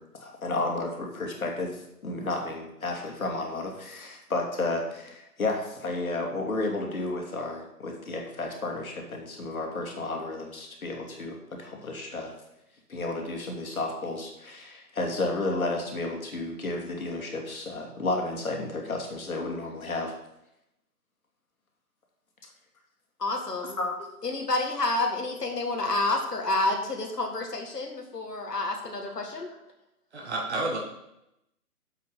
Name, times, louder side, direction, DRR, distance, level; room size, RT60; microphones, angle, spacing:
voice 1, 0.0-12.3 12.9-20.1 23.8-24.1, left 2 dB, 60° left, 1 dB, 2.5 m, -32 dB
voice 2, 23.2-23.8 24.2-29.5, left 2 dB, 80° left, 2 dB, 1.8 m, -29 dB
voice 3, 30.1-30.8, right 2 dB, 45° right, -1 dB, 1.8 m, -30 dB
7.6 x 6.9 x 5.7 m, 0.85 s
figure-of-eight pair, 150°, 47 cm